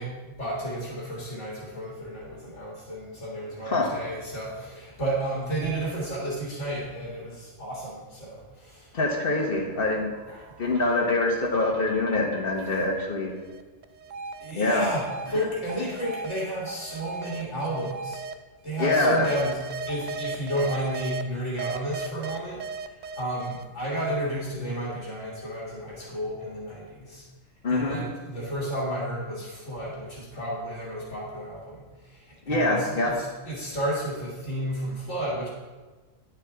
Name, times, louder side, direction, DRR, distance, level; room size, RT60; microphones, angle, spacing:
voice 1, 0.0-9.0 10.3-10.7 14.4-18.2 18.6-19.6 19.8-27.2 27.7-35.5, right 1 dB, 80° left, -5 dB, 2.5 m, -32 dB
voice 2, 8.9-10.1 10.6-13.3 14.5-14.9 18.8-19.3 27.6-28.0 32.5-33.1, left 2 dB, 50° left, 1 dB, 1.5 m, -24 dB
sound 1, 10.1-13.0 13.4-18.3 18.8-21.2 21.6-23.9, right 4 dB, 70° right, 0.4 m, -37 dB
10.0 x 7.1 x 3.6 m, 1.3 s
omnidirectional pair, 1.3 m